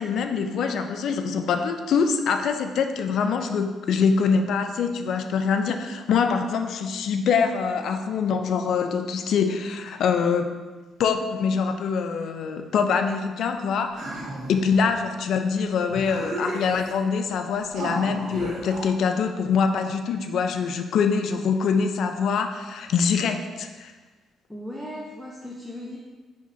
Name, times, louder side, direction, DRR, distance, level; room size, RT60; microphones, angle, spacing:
voice 1, 0.0-10.5 11.0-14.0 14.5-23.9, left 5 dB, 70° left, 6 dB, 0.3 m, -24 dB
sound 1, 14.0-14.8 15.5-15.6 15.9-17.0 17.7-18.9, right 1 dB, 70° right, 1.1 m, -33 dB
voice 2, 24.5-26.0, left 1 dB, ahead, -4 dB, 0.5 m, -37 dB
5.0 x 3.1 x 2.6 m, 1.3 s
cardioid pair, 90°, 0 cm